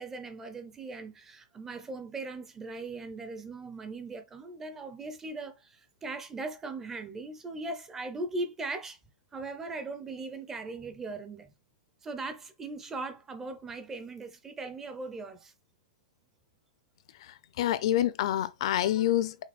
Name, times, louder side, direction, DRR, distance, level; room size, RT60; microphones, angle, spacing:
voice 1, 0.0-9.0 9.3-11.5 12.0-15.5, right 3 dB, 10° right, 0.5 m, -39 dB
voice 2, 17.2-19.4, left 12 dB, 45° left, 0.5 m, -27 dB
5.9 x 2.2 x 4.1 m
hypercardioid pair, 170°, 4 cm